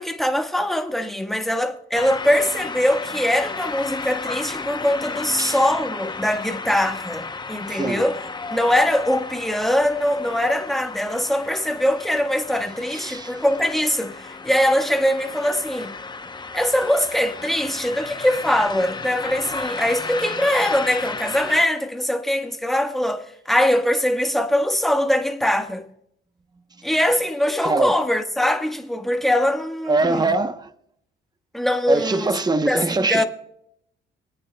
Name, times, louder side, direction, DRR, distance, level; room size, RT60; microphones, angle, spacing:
voice 1, 0.0-8.2 8.5-15.9 16.5-25.8 26.8-30.2 31.5-32.3 32.7-33.2, left 1 dB, ahead, 1.3 m, -22 dB
sound 1, 1.9-21.7, left 4 dB, 20° left, 0.7 m, -34 dB
voice 2, 7.7-8.0 12.9-13.3 27.6-28.0 29.9-30.7 31.9-33.2, right 3 dB, 20° right, 0.9 m, -23 dB
27.0 x 9.2 x 2.2 m
cardioid pair, 90°, 20 cm